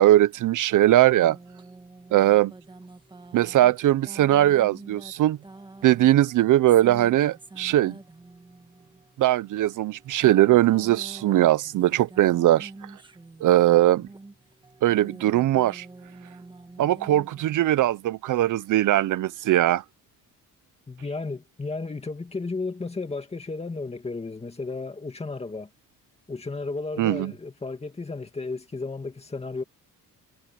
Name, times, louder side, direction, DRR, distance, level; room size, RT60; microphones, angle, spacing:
voice 1, 0.0-1.4 2.1-2.5 3.3-5.4 5.8-8.0 9.2-12.7 13.4-14.1 14.8-15.9 16.8-19.8 27.0-27.3, right 14 dB, 65° right, 0.5 m, -20 dB
sound 1, 1.2-17.9, right 2 dB, 15° right, 1.5 m, -46 dB
voice 2, 20.9-25.7 26.3-29.6, left 3 dB, 20° left, 2.4 m, -33 dB
wide cardioid pair, 170°, 34 cm